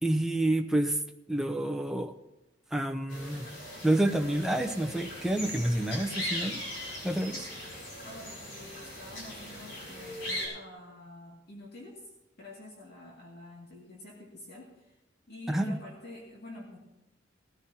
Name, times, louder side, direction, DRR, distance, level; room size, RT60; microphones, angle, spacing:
voice 1, 0.0-1.0 1.3-2.1 2.7-3.5 3.8-6.6 7.0-7.5 15.5-15.8, right 1 dB, 5° right, 5 dB, 0.7 m, -28 dB
sound 1, 3.1-10.5, left 1 dB, 80° left, 5.6 m, -39 dB
voice 2, 8.0-12.1 12.4-15.0 15.3-16.8, left 1 dB, 60° left, -3 dB, 2.3 m, -48 dB
19.0 x 13.5 x 2.9 m, 0.92 s
head